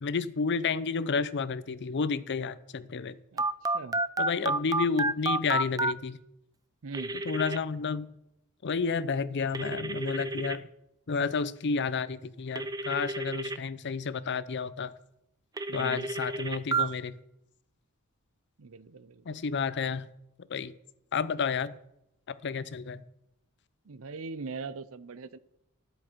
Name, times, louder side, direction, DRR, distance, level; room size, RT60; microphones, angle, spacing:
voice 1, 0.0-3.2 4.2-6.2 7.2-8.1 8.6-10.7 11.1-14.9 15.7-17.2 19.3-20.1 20.5-20.7 21.1-21.7 22.3-23.0, left 5 dB, 55° left, 16 dB, 0.6 m, -31 dB
Telephone, 3.4-5.9 6.9-7.6 9.5-10.6 12.6-13.6 15.6-16.8, right 3 dB, 15° right, 0.5 m, -30 dB
voice 2, 6.8-7.2 15.7-16.1 18.6-19.4 23.8-25.4, right 4 dB, 70° right, 17 dB, 0.6 m, -41 dB
13.0 x 10.0 x 4.5 m, 0.83 s
head